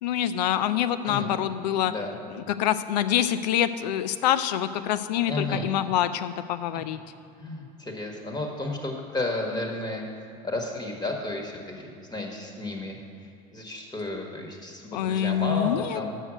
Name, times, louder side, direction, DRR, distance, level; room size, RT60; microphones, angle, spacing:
voice 1, 0.0-1.9 2.3-7.0 14.9-16.0, left 10 dB, 85° left, 12 dB, 0.5 m, -26 dB
voice 2, 1.8-2.1 5.3-5.7 7.4-13.0 13.5-16.2, left 2 dB, 20° left, 1 dB, 1.6 m, -32 dB
6.4 x 6.4 x 7.5 m, 2.4 s
hypercardioid pair, 90°, 21 cm